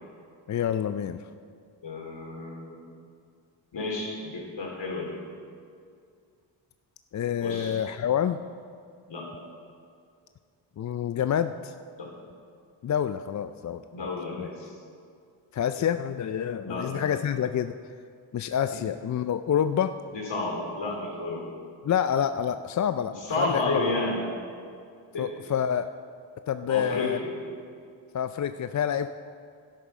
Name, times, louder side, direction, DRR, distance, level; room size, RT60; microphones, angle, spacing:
voice 1, 0.5-1.2 7.1-8.4 10.8-11.7 12.8-14.1 14.4-14.5 15.5-17.7 18.3-20.0 21.8-23.8 25.2-25.9 26.5-27.2 28.1-29.1, left 9 dB, 40° left, 10 dB, 0.4 m, -27 dB
voice 2, 1.8-2.8 3.7-5.2 7.4-7.8 9.1-9.3 11.9-12.1 13.9-14.7 16.6-16.9 20.1-21.4 23.2-24.2 25.1-25.3 26.7-27.3, left 2 dB, 60° left, -2 dB, 3.5 m, -31 dB
11.5 x 9.1 x 5.5 m, 2.3 s
supercardioid pair, 45°, 49 cm